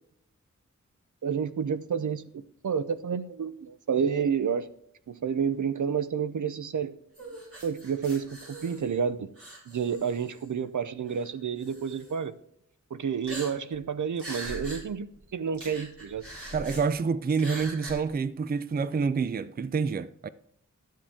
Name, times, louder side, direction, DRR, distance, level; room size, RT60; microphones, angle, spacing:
voice 1, 1.2-4.7 5.1-6.9 7.6-9.3 9.7-12.4 12.9-15.1 15.3-16.2, right 7 dB, 75° right, 0.7 m, -30 dB
sound 1, 7.1-9.0 9.4-10.5 11.1-11.2 11.6-12.1 13.2-13.8 14.2-14.8 15.1-15.2 15.5-16.8 17.3-17.9, right 1 dB, 45° right, 4.2 m, -42 dB
voice 2, 16.5-20.3, right 5 dB, 30° right, 0.4 m, -28 dB
12.5 x 7.5 x 3.6 m
wide cardioid pair, 95°, 31 cm